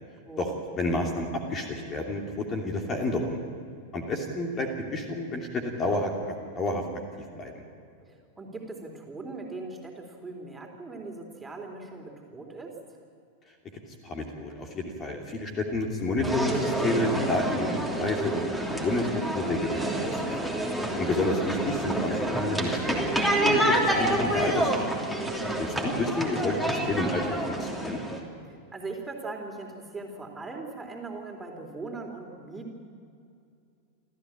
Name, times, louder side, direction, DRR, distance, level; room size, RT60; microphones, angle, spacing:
voice 1, 0.4-3.4 3.9-6.8 7.4-7.6 14.0-18.4 18.7-19.1 19.3-20.4 21.0-24.7 25.8-28.0, left 2 dB, 25° left, 2 dB, 2.8 m, -30 dB
voice 2, 8.0-12.8 20.8-21.3 25.4-25.7 28.3-32.8, right 3 dB, 10° right, 2 dB, 3.7 m, -40 dB
sound 1, 16.2-28.2, right 1 dB, 5° left, 3.1 m, -28 dB
28.5 x 14.0 x 8.8 m, 2.4 s
figure-of-eight pair, 90°, 0 cm